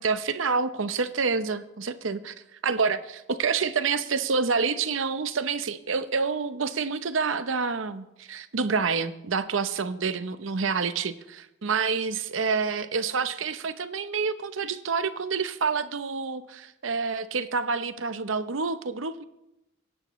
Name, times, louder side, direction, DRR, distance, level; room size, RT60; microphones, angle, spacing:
voice 1, 0.0-2.3 2.6-19.2, right 5 dB, 85° right, 12 dB, 0.8 m, -28 dB
22.5 x 11.0 x 3.1 m, 0.90 s
head